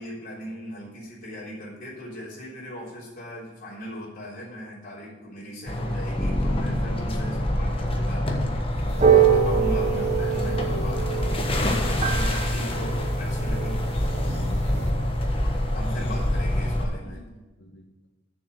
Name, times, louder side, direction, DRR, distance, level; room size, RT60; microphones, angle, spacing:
voice 1, 0.0-8.4 9.0-13.8 15.3-17.2, equal, 50° left, -6 dB, 3.6 m, -39 dB
sound 1, 5.7-16.8, left 1 dB, 30° left, 1.2 m, -26 dB
Bass guitar, 6.2-10.1, left 2 dB, 10° left, 0.7 m, -36 dB
sound 2, 8.9-14.9, right 7 dB, 40° right, 0.9 m, -25 dB
voice 2, 14.3-15.0 17.0-17.8, left 1 dB, 80° left, 1 dB, 1.9 m, -47 dB
7.1 x 6.6 x 7.9 m, 1.1 s
head